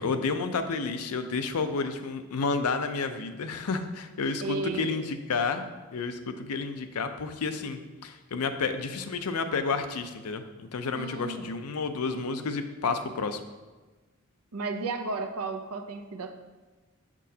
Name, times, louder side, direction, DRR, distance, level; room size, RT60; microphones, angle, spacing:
voice 1, 0.0-5.7 5.9-13.4, left 4 dB, 85° left, 8 dB, 0.5 m, -31 dB
voice 2, 4.4-5.1 10.9-11.5 14.5-16.3, right 3 dB, 90° right, 6 dB, 0.6 m, -33 dB
7.4 x 6.1 x 2.8 m, 1.2 s
head